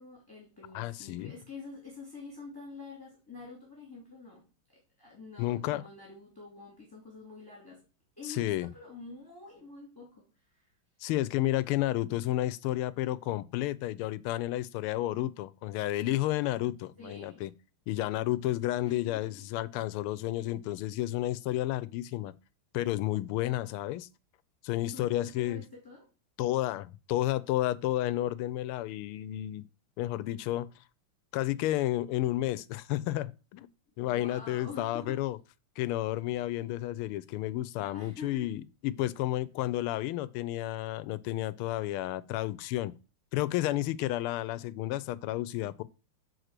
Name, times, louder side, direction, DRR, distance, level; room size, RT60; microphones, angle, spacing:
voice 1, 0.0-7.8 8.2-10.7 17.0-17.4 18.8-19.4 24.9-26.1 34.0-35.2 37.8-38.5, left 3 dB, 10° left, 2.3 m, -47 dB
voice 2, 0.7-1.3 5.4-5.8 8.2-8.7 11.0-17.5 17.9-22.3 22.7-24.1 24.6-25.6 26.4-29.7 30.0-30.8 31.3-33.7 34.0-35.4 35.8-42.9 43.3-45.8, left 15 dB, 85° left, 1.5 m, -31 dB
6.2 x 4.6 x 6.5 m
omnidirectional pair, 2.4 m